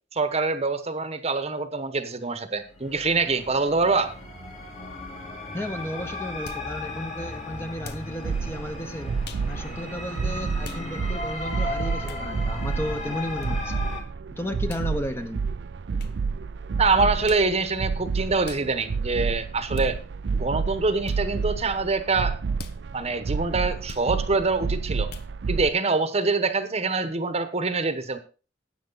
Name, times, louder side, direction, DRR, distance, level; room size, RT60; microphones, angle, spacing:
voice 1, 0.1-4.1 16.8-20.0 20.3-22.4 22.9-25.1 25.5-28.2, right 3 dB, 35° right, 10 dB, 1.1 m, -25 dB
sound 1, 2.6-14.0, left 2 dB, 40° left, 2.8 m, -36 dB
voice 2, 5.5-9.1 9.5-13.7 14.4-15.4, equal, 15° left, 7 dB, 1.0 m, -33 dB
sound 2, 6.4-6.7 7.8-8.1 9.2-9.5 10.6-10.8 12.0-12.3 13.4-13.5 14.7-14.9 16.0-16.1 17.2-17.5 18.4-18.7 19.7-19.9 21.0-21.2 22.5-22.8 23.9-24.1 25.1-25.3, left 3 dB, 60° left, 1.0 m, -41 dB
sound 3, 8.2-25.7, right 5 dB, 70° right, 0.4 m, -30 dB
12.5 x 9.0 x 4.0 m, 0.35 s
head